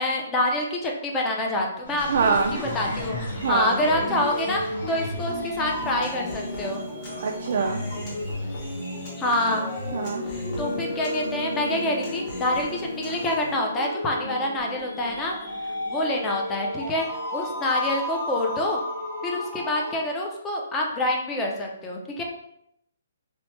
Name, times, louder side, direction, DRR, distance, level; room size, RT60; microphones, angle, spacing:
voice 1, 0.0-2.4 2.6-3.2 3.5-6.8 9.2-9.6 10.3-15.4 15.6-18.8 19.2-22.2, left 1 dB, 15° left, 0 dB, 0.5 m, -27 dB
sound 1, 1.8-19.9, left 1 dB, 65° left, 1.4 m, -33 dB
voice 2, 2.1-2.6 3.4-3.7 7.2-7.8 9.9-10.2, right 5 dB, 55° right, 2 dB, 0.3 m, -24 dB
Human voice, 5.5-13.5, left 1 dB, 30° left, 0.8 m, -37 dB
3.0 x 2.1 x 3.1 m, 0.78 s
hypercardioid pair, 160°, 0 cm